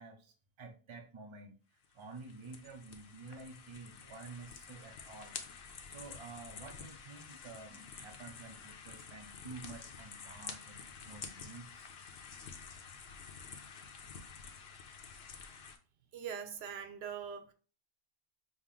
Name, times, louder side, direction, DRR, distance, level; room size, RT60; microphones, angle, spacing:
voice 1, 0.0-1.6 1.9-5.4 5.9-11.9, right 4 dB, 35° right, 0.6 m, -50 dB
sound 1, 1.8-15.8, left 6 dB, 75° left, 0.9 m, -50 dB
voice 2, 16.1-17.5, right 7 dB, 80° right, 0.9 m, -42 dB
6.0 x 2.0 x 3.7 m
omnidirectional pair, 1.1 m